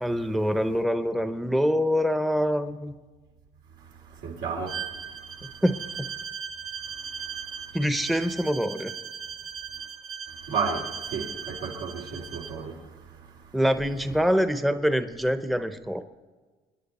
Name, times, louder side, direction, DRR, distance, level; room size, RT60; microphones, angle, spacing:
voice 1, 0.0-2.9 5.6-5.7 7.7-8.9 13.5-16.0, equal, ahead, 0.7 m, -25 dB
voice 2, 4.2-4.8 10.5-12.8, right 5 dB, 85° right, 3.0 m, -32 dB
Bowed string instrument, 4.7-12.6, right 7 dB, 55° right, 1.9 m, -38 dB
27.5 x 10.0 x 4.2 m
cardioid pair, 110°, 17 cm